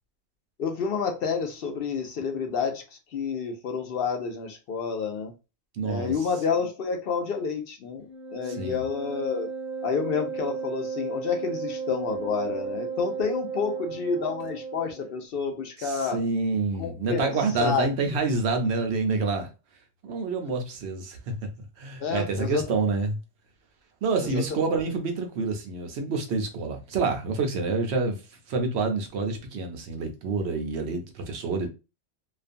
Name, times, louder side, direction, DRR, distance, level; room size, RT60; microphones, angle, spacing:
voice 1, 0.6-2.8 3.1-5.3 5.8-8.1 8.3-9.5 9.8-16.2 16.8-17.3 17.6-17.9 22.0-22.6 24.2-24.6, left 5 dB, 65° left, 0.7 m, -29 dB
voice 2, 5.8-6.1 8.6-8.8 15.8-19.5 20.0-21.2 21.8-23.2 24.0-28.2 28.5-31.7, right 3 dB, 70° right, 0.9 m, -27 dB
Wind instrument woodwind instrument, 8.0-15.1, right 6 dB, ahead, 0.8 m, -34 dB
2.4 x 2.2 x 2.5 m
omnidirectional pair, 1.2 m